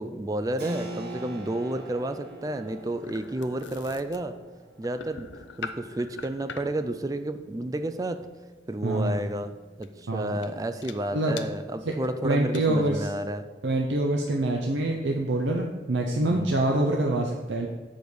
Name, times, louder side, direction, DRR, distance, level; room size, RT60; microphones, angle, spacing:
voice 1, 0.0-4.3 4.8-5.3 5.6-8.3 8.7-9.5 9.8-13.5 16.2-16.5, right 1 dB, 20° right, 9 dB, 0.4 m, -31 dB
Keyboard (musical), 0.6-11.0, right 1 dB, 65° right, 1.5 m, -45 dB
sound 1, 2.2-6.9 9.1-9.3 9.8-10.0 10.4-10.5 10.8-10.9 11.4-11.5 12.0-12.1 12.3-12.6, left 5 dB, 85° left, 0.6 m, -42 dB
voice 2, 8.8-9.2 10.1-10.4 11.1-11.4 11.9-12.0 12.2-13.1 13.6-17.7, right 1 dB, 85° right, 1 dB, 0.7 m, -25 dB
6.9 x 5.1 x 6.1 m, 1.3 s
head